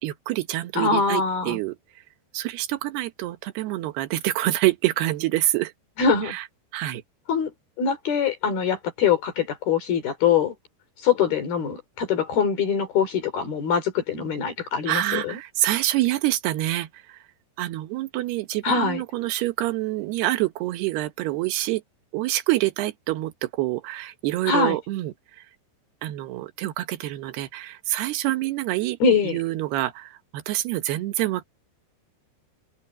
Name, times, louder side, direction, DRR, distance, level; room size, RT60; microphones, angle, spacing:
voice 1, 0.0-1.8 2.3-5.7 6.2-6.4 6.7-7.0 14.9-17.2 17.6-21.8 22.1-25.4 26.0-29.0 29.2-31.4, right 16 dB, 75° right, 3.1 m, -26 dB
voice 2, 0.8-1.6 6.0-6.4 7.3-7.5 7.8-10.5 11.0-15.4 18.6-19.0 24.5-24.8 29.0-29.4, left 6 dB, 60° left, 5.1 m, -23 dB
open air
omnidirectional pair, 5.0 m